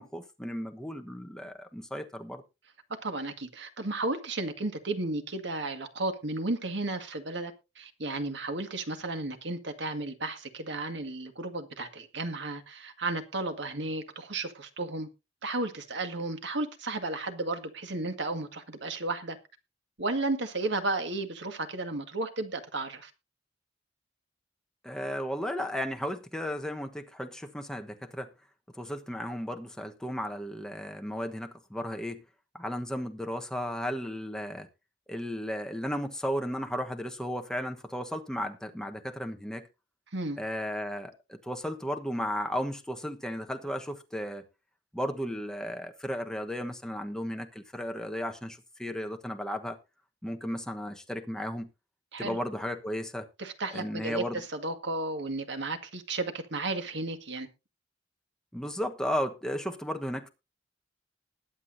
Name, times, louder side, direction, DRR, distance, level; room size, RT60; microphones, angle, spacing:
voice 1, 0.0-2.4 24.8-28.3 28.7-32.2 32.5-34.7 35.1-39.7 40.4-44.4 44.9-49.8 50.2-51.7 52.2-53.3 53.7-54.4 58.5-60.3, equal, 5° left, 1.2 m, -34 dB
voice 2, 2.9-15.1 15.4-19.4 20.0-23.1 40.1-40.4 52.1-52.4 53.4-57.5, right 2 dB, 65° right, 1.8 m, -33 dB
20.5 x 8.3 x 2.7 m
head